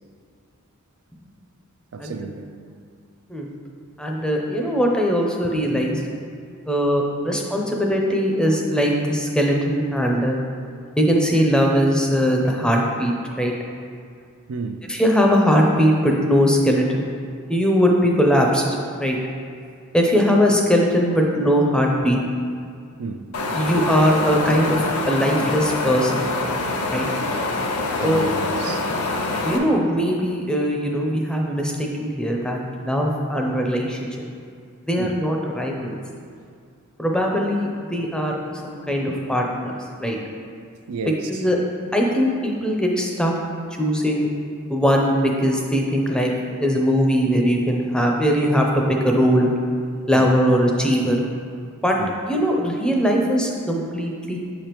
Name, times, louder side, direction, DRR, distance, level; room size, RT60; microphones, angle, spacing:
voice 1, 1.9-2.5 14.5-14.9 23.0-23.3 27.1-27.2 28.0-28.9 35.0-35.2 40.9-41.5 50.1-50.3 52.0-52.1, right 4 dB, 75° right, 0.4 m, -32 dB
voice 2, 4.0-6.0 6.6-10.4 11.0-13.5 14.9-17.1 17.5-18.7 19.0-19.2 19.9-22.2 23.5-26.3 26.9-27.1 28.0-28.2 29.4-34.1 34.9-36.0 37.0-38.4 38.6-39.7 40.0-40.2 41.3-41.6 41.9-43.3 43.8-44.3 44.7-49.5 50.1-51.2 51.8-52.0 52.3-54.4, equal, 5° left, 0.5 m, -20 dB
Wind, 23.3-29.6, left 2 dB, 85° left, 0.6 m, -25 dB
7.0 x 5.0 x 3.0 m
head